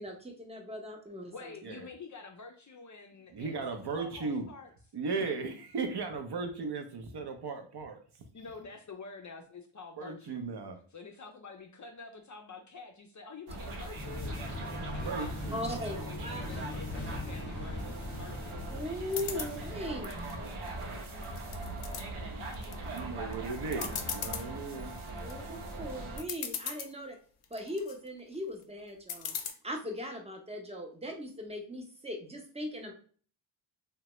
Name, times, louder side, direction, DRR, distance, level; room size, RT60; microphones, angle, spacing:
voice 1, 0.0-1.5 15.5-16.4 18.7-20.1 25.2-27.2 27.5-32.9, left 1 dB, 15° right, 1 dB, 0.6 m, -39 dB
voice 2, 1.1-4.7 8.3-10.5 10.9-15.6 16.0-18.7, left 4 dB, 40° left, 3 dB, 0.4 m, -48 dB
voice 3, 3.3-4.5 4.9-8.0 10.0-10.8 14.7-15.7 22.8-25.0, right 4 dB, 55° right, 5 dB, 0.6 m, -36 dB
sound 1, 13.5-26.2, right 2 dB, 85° right, 0.8 m, -41 dB
sound 2, 13.9-19.8, left 2 dB, 25° left, 0.8 m, -41 dB
sound 3, 19.1-19.5 20.0-20.8 21.2-22.0 22.5-23.0 23.3-23.4 23.7-24.5 25.0-25.3 25.9-26.0 26.2-26.9 27.4-28.0 29.1-29.5, left 7 dB, 90° left, 0.6 m, -38 dB
2.8 x 2.2 x 2.9 m, 0.43 s
wide cardioid pair, 95°, 49 cm